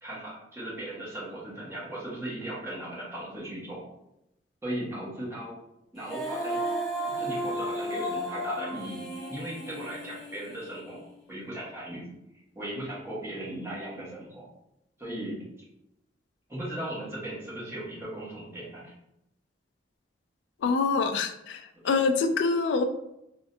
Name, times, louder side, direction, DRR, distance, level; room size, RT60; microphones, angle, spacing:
voice 1, 0.0-3.8 4.6-5.5 5.9-6.6 7.1-9.0 9.3-11.0 11.3-12.0 12.5-14.5 15.0-15.3 16.5-18.9, right 1 dB, 15° right, -7 dB, 1.1 m, -37 dB
Female singing, 6.0-11.2, equal, 5° left, 0.5 m, -34 dB
voice 2, 20.6-22.8, left 4 dB, 75° left, 6 dB, 0.3 m, -25 dB
3.5 x 2.2 x 2.6 m, 0.85 s
head